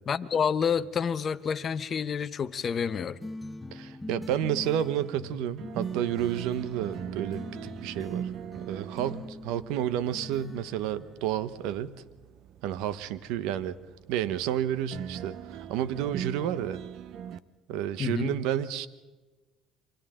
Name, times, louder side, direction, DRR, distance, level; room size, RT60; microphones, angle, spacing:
voice 1, 0.1-3.2 18.0-18.3, left 7 dB, 35° left, 12 dB, 1.0 m, -28 dB
sound 1, 3.2-11.6, left 2 dB, 10° left, 1.1 m, -43 dB
voice 2, 3.7-8.3 8.6-11.9 12.6-13.8 14.1-16.8 17.7-18.9, right 10 dB, 80° right, 15 dB, 1.1 m, -31 dB
sound 2, 5.6-17.4, right 9 dB, 60° right, 0.9 m, -41 dB
28.0 x 25.0 x 3.8 m, 1.2 s
cardioid pair, 115°, 0 cm